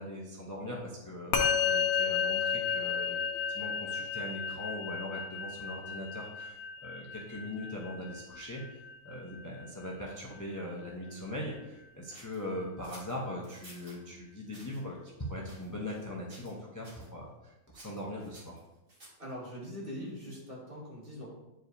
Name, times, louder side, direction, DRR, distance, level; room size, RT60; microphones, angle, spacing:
voice 1, 0.0-15.0 15.3-18.6, left 1 dB, 15° left, -3 dB, 0.7 m, -41 dB
Musical instrument, 1.3-10.9, left 7 dB, 85° left, 1.3 m, -33 dB
sound 1, 12.1-14.0 14.5-14.8 15.4-16.0 16.3-16.6 16.8-17.1 17.7-19.3, right 1 dB, 60° right, 2.6 m, -54 dB
voice 2, 19.2-21.3, equal, 40° right, -6 dB, 2.1 m, -42 dB
8.9 x 4.7 x 2.7 m, 0.98 s
omnidirectional pair, 1.5 m